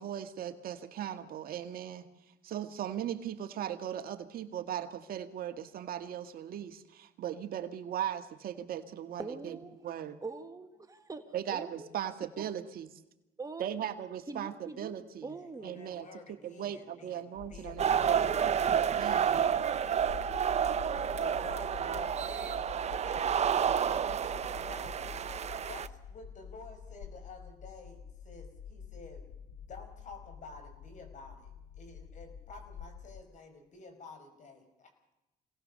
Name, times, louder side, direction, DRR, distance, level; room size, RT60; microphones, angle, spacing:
voice 1, 0.0-2.1 2.4-9.6 9.8-10.2 11.3-12.9 13.6-15.3 15.6-18.2 18.9-19.4, right 10 dB, 60° right, 8 dB, 1.8 m, -38 dB
voice 2, 9.2-9.8 10.2-11.9 12.4-12.5 13.4-13.8 14.3-14.9 15.2-15.8, right 3 dB, 20° right, 7 dB, 1.7 m, -43 dB
voice 3, 15.3-19.0 20.9-25.0 25.6-34.9, left 3 dB, 45° left, 7 dB, 5.3 m, -51 dB
sound 1, 17.4-33.2, left 7 dB, 90° left, 1.0 m, -47 dB
sound 2, 17.8-25.9, right 8 dB, 40° right, 0.9 m, -30 dB
26.5 x 18.0 x 6.7 m, 0.94 s
cardioid pair, 110°, 17 cm